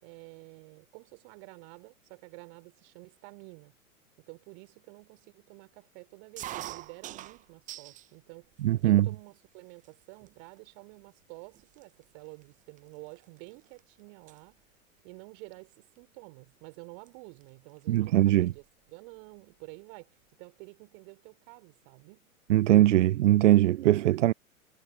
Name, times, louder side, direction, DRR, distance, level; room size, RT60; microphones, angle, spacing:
voice 1, 0.0-3.7 4.3-8.5 8.8-14.6 15.0-22.3, right 38 dB, 45° right, 5.5 m, -50 dB
sound 1, 6.4-8.1 8.5-9.2 9.8-9.9 10.2-10.6 11.2-11.3 11.5-13.8 14.1-14.4 15.7-16.0 17.1-17.2 17.4-17.5 17.8-18.7, right 14 dB, 20° right, 0.7 m, -44 dB
voice 2, 8.6-9.1 17.9-18.5 22.5-24.3, right 14 dB, 60° right, 0.7 m, -21 dB
figure-of-eight pair, 105°, 42 cm